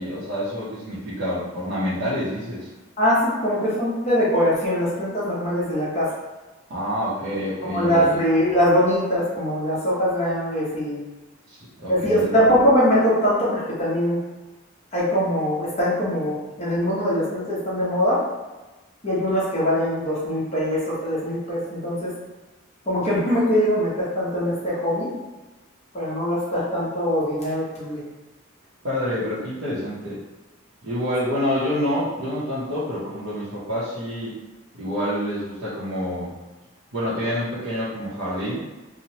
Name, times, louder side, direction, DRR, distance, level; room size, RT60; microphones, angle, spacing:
voice 1, 0.0-2.7 6.7-8.2 11.5-12.4 28.8-30.2 30.8-34.4 34.8-36.3 36.9-38.6, equal, 70° right, -11 dB, 0.7 m, -27 dB
voice 2, 3.0-6.1 7.7-11.0 11.9-14.2 14.9-18.2 19.0-22.1 22.9-25.1 25.9-28.0, equal, 30° left, -8 dB, 0.9 m, -22 dB
3.0 x 2.0 x 2.8 m, 1.2 s
head